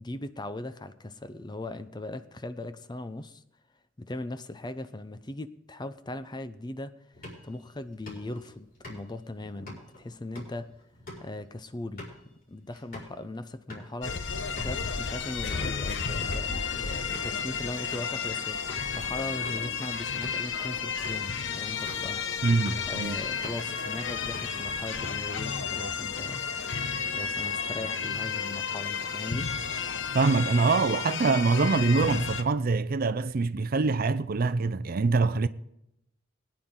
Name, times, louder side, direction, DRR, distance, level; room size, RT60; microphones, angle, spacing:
voice 1, 0.0-3.4 4.0-6.9 7.4-10.7 11.2-12.1 12.5-22.2 22.9-26.4 27.1-29.5, left 2 dB, 20° left, 0.6 m, -39 dB
sound 1, 7.1-13.2 13.5-13.9 14.2-14.3 14.6-14.8 15.3-15.8 16.3-16.6 17.1-17.4 17.9-18.2 18.7-18.8 19.3-19.7 20.1-20.5 21.0-21.3 21.9-22.2 22.5-22.9 23.2-23.7 24.1-24.7, left 1 dB, 50° left, 5.0 m, -46 dB
sound 2, 14.0-32.4, left 6 dB, 65° left, 0.8 m, -32 dB
voice 2, 22.4-23.2 30.1-35.5, right 4 dB, 50° right, 0.5 m, -24 dB
21.5 x 9.6 x 3.8 m
head